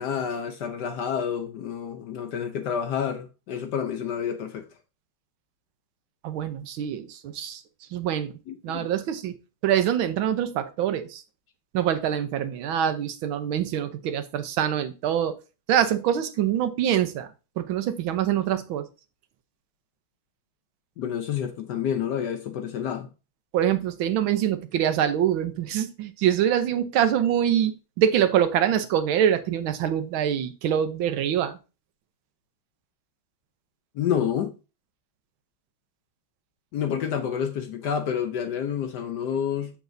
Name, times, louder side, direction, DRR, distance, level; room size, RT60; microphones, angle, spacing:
voice 1, 0.0-4.7 8.5-8.9 21.0-23.1 33.9-34.5 36.7-39.7, left 8 dB, 65° left, 1.1 m, -29 dB
voice 2, 6.2-7.6 7.9-8.3 8.6-9.4 9.6-11.2 11.7-15.3 15.7-17.3 17.6-18.9 23.5-31.6, right 10 dB, 75° right, 1.5 m, -24 dB
7.0 x 7.0 x 2.6 m
omnidirectional pair, 2.3 m